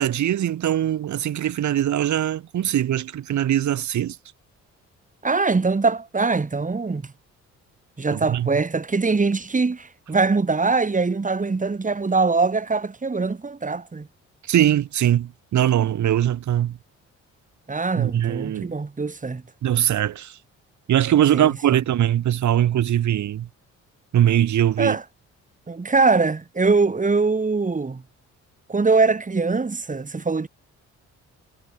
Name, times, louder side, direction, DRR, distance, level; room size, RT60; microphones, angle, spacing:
voice 1, 0.0-4.2 8.1-8.5 14.5-16.8 18.0-18.7 19.6-20.3 20.9-23.5 24.1-25.0, right 11 dB, 70° right, 4.5 m, -21 dB
voice 2, 5.2-7.1 8.0-14.1 17.7-19.4 21.3-21.5 24.8-25.0 25.7-28.0 28.7-30.5, right 4 dB, 25° right, 5.8 m, -22 dB
cardioid pair, 90°, 30 cm